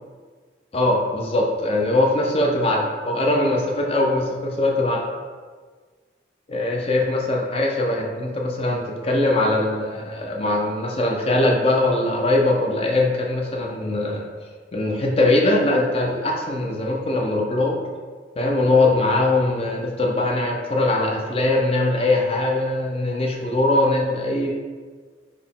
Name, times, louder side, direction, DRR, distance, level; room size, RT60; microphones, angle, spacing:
voice 1, 0.7-5.1 6.5-14.2 14.7-17.8 18.4-24.5, left 2 dB, 30° left, 0 dB, 0.4 m, -21 dB
3.9 x 2.1 x 3.5 m, 1.5 s
head